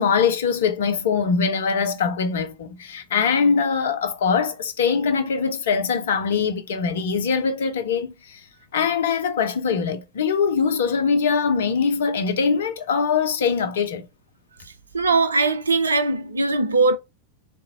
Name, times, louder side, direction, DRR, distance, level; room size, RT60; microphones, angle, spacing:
voice 1, 0.0-8.4 8.7-14.1, left 6 dB, 60° left, 0.7 m, -22 dB
voice 2, 14.9-17.0, right 3 dB, 75° right, 0.6 m, -20 dB
4.0 x 3.5 x 2.6 m
figure-of-eight pair, 90°, 0 cm